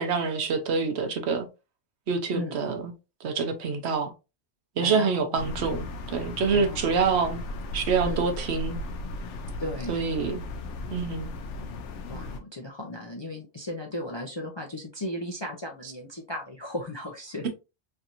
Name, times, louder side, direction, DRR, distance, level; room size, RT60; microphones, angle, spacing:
voice 1, 0.0-1.5 2.1-2.9 3.2-4.1 4.8-7.4 7.7-8.8 9.9-10.4 10.9-11.3, right 5 dB, 70° right, 0.9 m, -26 dB
voice 2, 4.8-5.4 6.5-6.8 8.0-8.3 9.6-10.0 12.1-17.5, left 1 dB, 35° left, 0.4 m, -36 dB
sound 1, 5.4-12.4, left 1 dB, 75° left, 0.9 m, -36 dB
3.3 x 2.8 x 2.5 m
omnidirectional pair, 1.2 m